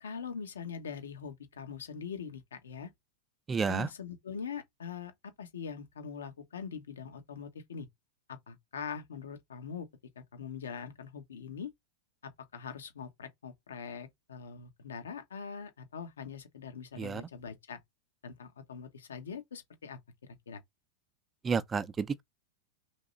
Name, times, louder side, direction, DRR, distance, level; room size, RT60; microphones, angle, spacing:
voice 1, 0.0-2.9 3.7-7.9 8.3-9.9 10.1-11.7 12.2-17.8 18.2-20.6, left 6 dB, 85° left, 1.2 m, -43 dB
voice 2, 3.5-3.9 17.0-17.2 21.4-22.2, right 5 dB, 20° right, 0.6 m, -31 dB
3.6 x 3.0 x 3.9 m
hypercardioid pair, 110°, 0 cm